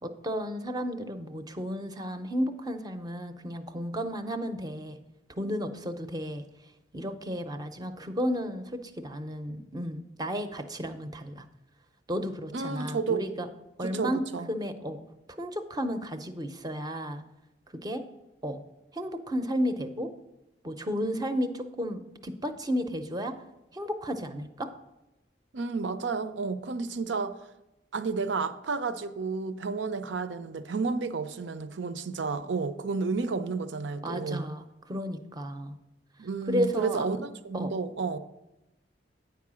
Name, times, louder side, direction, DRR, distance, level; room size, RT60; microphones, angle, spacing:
voice 1, 0.0-5.0 5.4-6.4 6.9-11.5 12.1-13.5 13.8-14.2 14.5-15.0 15.4-17.2 17.7-18.0 18.4-18.6 18.9-20.1 20.6-23.4 23.7-24.7 34.0-35.8 36.5-37.1 37.5-37.7, equal, 20° right, 0.6 m, -33 dB
voice 2, 12.5-13.3 13.8-14.5 25.5-27.4 27.9-34.4 36.2-38.2, right 4 dB, 85° right, 0.6 m, -31 dB
9.1 x 4.8 x 6.2 m
head